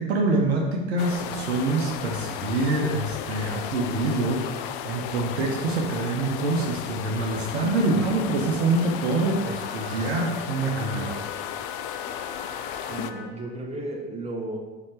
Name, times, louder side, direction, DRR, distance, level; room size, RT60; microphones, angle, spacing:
voice 1, 0.0-11.2, right 2 dB, 75° right, 0 dB, 0.9 m, -25 dB
sound 1, 1.0-13.1, left 10 dB, 50° left, 0.4 m, -35 dB
Wind instrument woodwind instrument, 9.1-13.3, left 3 dB, 30° left, 1.1 m, -42 dB
voice 2, 12.9-14.6, right 2 dB, 20° right, -1 dB, 1.4 m, -33 dB
5.4 x 4.3 x 4.8 m, 1.2 s
figure-of-eight pair, 70°, 33 cm